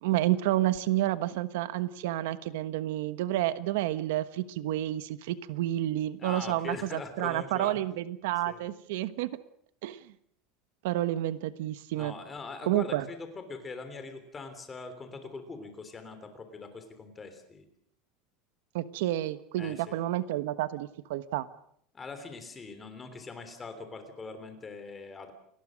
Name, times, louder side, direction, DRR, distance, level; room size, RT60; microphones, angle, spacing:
voice 1, 0.0-9.3 9.8-10.0 10.8-12.1 12.7-13.0 18.7-21.5, right 14 dB, 75° right, 13 dB, 1.3 m, -30 dB
voice 2, 6.2-7.8 8.4-8.6 11.9-17.6 19.6-20.0 21.9-25.3, left 4 dB, 15° left, 8 dB, 3.3 m, -42 dB
29.0 x 19.5 x 6.5 m, 0.67 s
cardioid pair, 180°, 0 cm